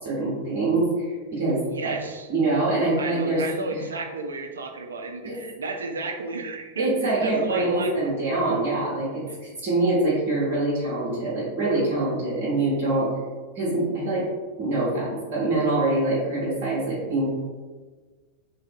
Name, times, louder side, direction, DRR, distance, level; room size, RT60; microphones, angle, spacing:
voice 1, 0.0-1.9 2.3-3.4 3.7-3.8 5.2-5.5 6.8-13.1 13.5-14.2 14.6-17.3, right 2 dB, 45° right, -7 dB, 0.8 m, -24 dB
voice 2, 1.6-2.3 3.0-8.1 9.3-9.4, right 3 dB, 70° right, 4 dB, 0.3 m, -32 dB
2.7 x 2.5 x 2.3 m, 1.4 s
figure-of-eight pair, 90°, 0 cm